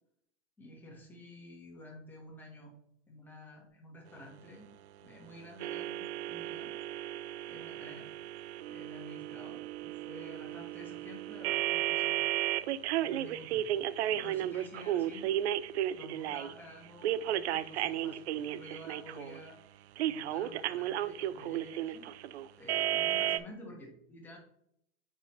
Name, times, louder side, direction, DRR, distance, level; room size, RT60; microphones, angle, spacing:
voice 1, 0.6-2.7 3.1-4.7 5.0-6.7 7.5-8.1 8.7-12.2 13.0-13.7 14.0-15.3 15.9-19.6 20.1-22.1 22.6-24.4, left 1 dB, 5° left, -2 dB, 1.1 m, -51 dB
sound 1, 5.6-16.5 17.0-19.4 20.0-23.4, right 12 dB, 75° right, 0.5 m, -34 dB
8.0 x 4.7 x 3.0 m, 0.74 s
supercardioid pair, 165°, 33 cm